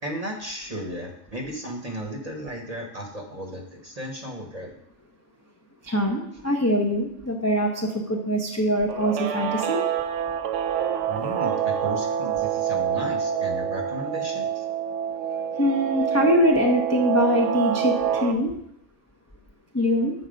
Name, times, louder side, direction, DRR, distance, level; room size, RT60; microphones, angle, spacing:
voice 1, 0.0-4.8 11.1-14.6, right 1 dB, 30° right, 1 dB, 1.0 m, -35 dB
voice 2, 5.8-9.8 15.6-18.5 19.7-20.1, equal, 15° left, 0 dB, 0.5 m, -23 dB
Guitar, 8.9-18.3, right 8 dB, 70° right, 0.9 m, -26 dB
7.2 x 4.2 x 5.1 m, 0.76 s
omnidirectional pair, 1.4 m